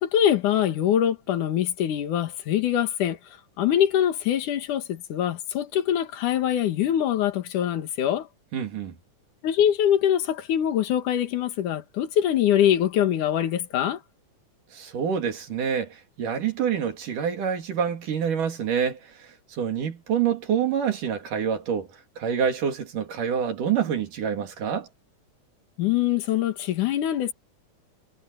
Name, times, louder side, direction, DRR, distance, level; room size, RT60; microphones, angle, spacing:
voice 1, 0.0-3.2 3.6-8.3 9.4-14.0 25.8-27.3, left 10 dB, 75° left, 3.1 m, -23 dB
voice 2, 8.5-8.9 14.7-21.9 22.2-24.9, right 8 dB, 80° right, 4.2 m, -27 dB
omnidirectional pair, 3.6 m